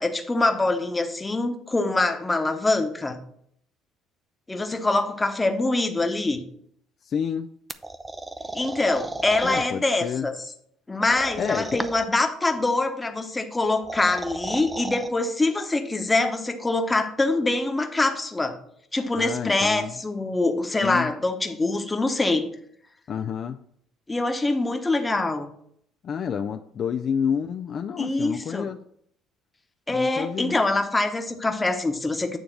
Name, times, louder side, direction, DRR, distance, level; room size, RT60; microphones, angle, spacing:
voice 1, 0.0-3.2 4.5-6.4 8.5-10.3 10.9-18.6 18.9-22.5 24.1-25.5 28.0-28.7 29.9-32.4, left 2 dB, 15° left, 5 dB, 1.0 m, -24 dB
voice 2, 7.0-7.5 9.4-10.3 11.4-11.8 19.2-19.9 20.8-21.1 23.1-23.6 26.0-28.8 29.9-30.6, left 7 dB, 50° left, 7 dB, 0.4 m, -29 dB
sound 1, 7.7-9.7 11.0-12.2 13.6-15.1, right 2 dB, 15° right, 0.5 m, -34 dB
9.0 x 3.4 x 6.2 m, 0.68 s
cardioid pair, 100°, 0 cm